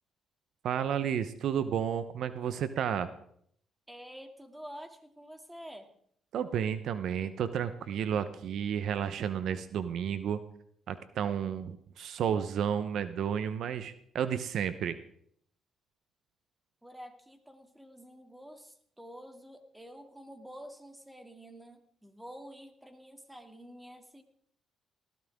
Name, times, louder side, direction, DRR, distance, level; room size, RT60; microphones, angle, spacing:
voice 1, 0.6-3.1 6.3-10.4 10.9-14.9, right 8 dB, 70° right, 12 dB, 0.9 m, -32 dB
voice 2, 3.9-5.9 16.8-24.2, equal, 5° right, 5 dB, 2.6 m, -49 dB
19.0 x 16.0 x 3.6 m, 0.67 s
cardioid pair, 75°, 0 cm